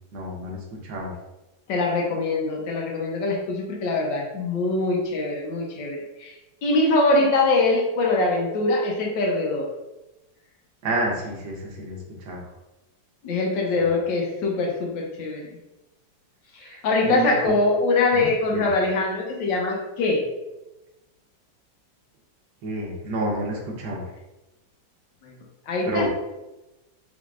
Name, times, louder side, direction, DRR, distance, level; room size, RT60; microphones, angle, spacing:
voice 1, 0.1-1.1 10.8-12.5 13.8-13.9 16.6-17.5 18.1-18.7 22.6-24.1 25.9-26.1, right 1 dB, 80° right, -2 dB, 1.7 m, -30 dB
voice 2, 1.7-6.3 6.6-9.7 13.2-15.6 16.6-20.2 25.2-25.3 25.7-26.1, left 2 dB, 75° left, -1 dB, 1.5 m, -23 dB
4.5 x 3.5 x 2.4 m, 1.0 s
omnidirectional pair, 2.1 m